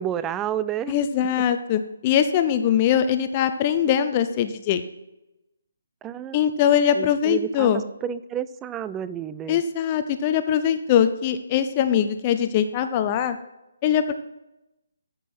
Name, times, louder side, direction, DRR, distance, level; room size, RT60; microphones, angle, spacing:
voice 1, 0.0-0.9 6.0-6.4 6.9-9.6, right 10 dB, 15° right, 15 dB, 0.4 m, -30 dB
voice 2, 0.9-4.8 6.3-7.8 9.5-13.4 13.8-14.1, left 9 dB, 30° left, 9 dB, 0.6 m, -22 dB
14.0 x 6.3 x 4.3 m, 0.92 s
figure-of-eight pair, 145°, 0 cm